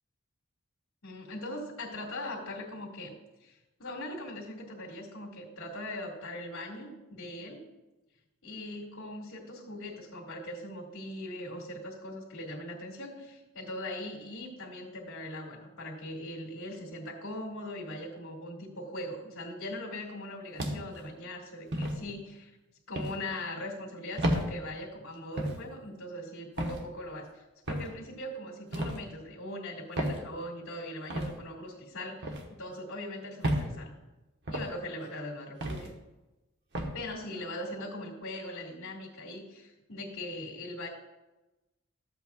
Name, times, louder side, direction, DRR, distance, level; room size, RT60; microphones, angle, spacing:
voice 1, 1.0-3.1 3.4-7.6 8.4-22.5 22.9-33.9 34.5-35.9 36.9-40.9, left 1 dB, 70° left, -4 dB, 1.9 m, -40 dB
sound 1, 20.6-21.0 21.7-22.0 23.0-23.2 24.2-24.5 25.4-25.6 26.6-26.8 27.7-27.9 28.7-29.0 30.0-30.2 31.1-31.3 32.2-32.5 33.4-33.7 34.5-34.7 35.6-35.9 36.7-37.0, right 1 dB, 55° right, 1.2 m, -31 dB
13.5 x 8.1 x 2.3 m, 1.0 s
head